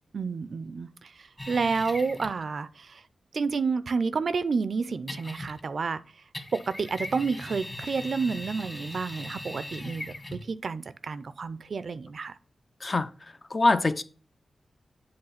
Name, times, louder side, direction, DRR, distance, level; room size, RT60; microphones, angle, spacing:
voice 1, 0.1-3.0 3.3-6.0 6.5-12.4, right 4 dB, 65° right, 0.4 m, -30 dB
sound 1, 1.4-2.5 5.1-5.8 6.3-10.5, left 1 dB, 25° left, 1.4 m, -39 dB
voice 2, 12.8-14.0, left 2 dB, 40° left, 0.5 m, -25 dB
7.9 x 3.3 x 5.7 m
cardioid pair, 65°, 0 cm